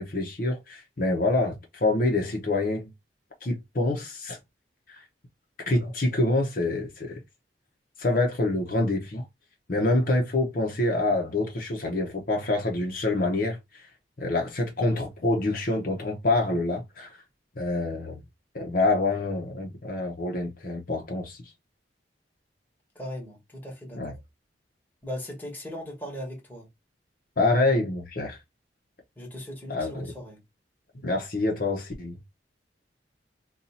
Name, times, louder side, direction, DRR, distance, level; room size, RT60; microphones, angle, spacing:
voice 1, 0.0-2.9 3.4-4.4 4.9-5.0 5.7-7.2 8.0-9.2 9.7-13.6 14.2-17.1 17.6-18.2 18.5-21.4 23.9-24.1 27.4-28.4 29.7-30.1 31.0-32.2, left 2 dB, 50° left, 0.7 m, -26 dB
voice 2, 22.9-24.2 25.0-26.7 29.2-30.4, equal, 10° left, 1.2 m, -38 dB
2.7 x 2.3 x 4.0 m
head